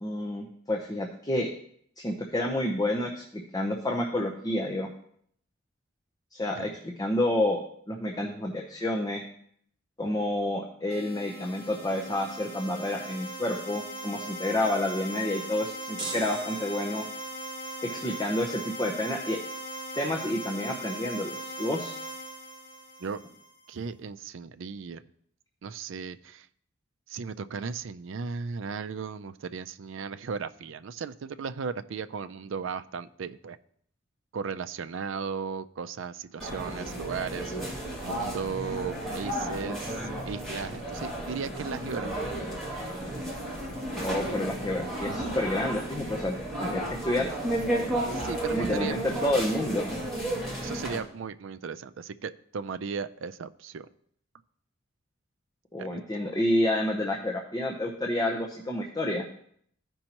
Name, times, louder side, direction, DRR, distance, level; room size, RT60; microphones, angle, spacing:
voice 1, 0.0-1.5 2.0-4.9 6.3-6.7 7.0-7.6 7.9-9.2 10.0-17.0 17.8-19.4 20.0-22.0 44.0-47.3 48.5-49.9 55.7-59.2, left 1 dB, 20° left, 0 dB, 0.8 m, -29 dB
sound 1, 10.9-23.6, right 1 dB, 75° left, 1.9 m, -39 dB
sound 2, 16.0-17.3, right 2 dB, 25° right, 1.5 m, -39 dB
voice 2, 23.7-25.0 25.6-26.5 27.1-33.6 34.3-37.6 38.0-40.0 40.3-42.3 48.1-48.9 50.6-53.9 55.8-55.9, right 5 dB, 70° right, 11 dB, 0.4 m, -36 dB
sound 3, 36.4-51.0, right 1 dB, ahead, 2.5 m, -33 dB
14.5 x 5.3 x 3.0 m, 0.65 s
head